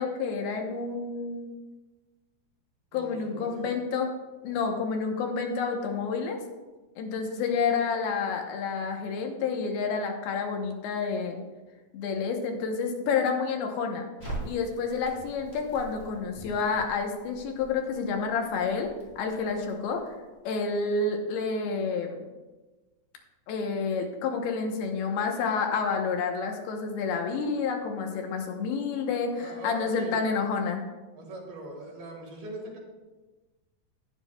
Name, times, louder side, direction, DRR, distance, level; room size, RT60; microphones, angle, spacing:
voice 1, 0.0-1.5 2.9-4.1 4.4-6.4 7.0-11.4 11.9-14.1 14.4-20.0 20.4-22.2 23.5-30.8, left 5 dB, 90° left, 3 dB, 3.0 m, -29 dB
voice 2, 2.9-3.7 4.5-4.7 29.4-30.2 31.2-32.8, right 2 dB, 80° right, -2 dB, 3.7 m, -42 dB
Crackle, 14.2-20.3, right 2 dB, 10° left, 3.1 m, -44 dB
11.5 x 10.0 x 2.3 m, 1.2 s
omnidirectional pair, 4.3 m